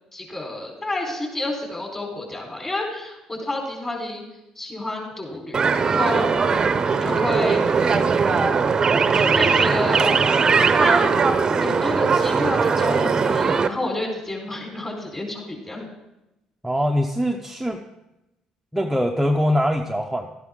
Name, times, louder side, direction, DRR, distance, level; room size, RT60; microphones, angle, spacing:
voice 1, 0.1-4.2 4.6-6.3 7.0-8.5 9.1-10.1 10.5-11.1 11.6-15.9, left 1 dB, 25° left, 1 dB, 4.4 m, -30 dB
sound 1, 5.5-13.7, right 5 dB, 35° right, 0.7 m, -19 dB
voice 2, 16.6-17.8 18.7-20.3, equal, 5° right, 2 dB, 0.8 m, -22 dB
12.5 x 10.5 x 3.8 m, 0.95 s
supercardioid pair, 75°, 2 cm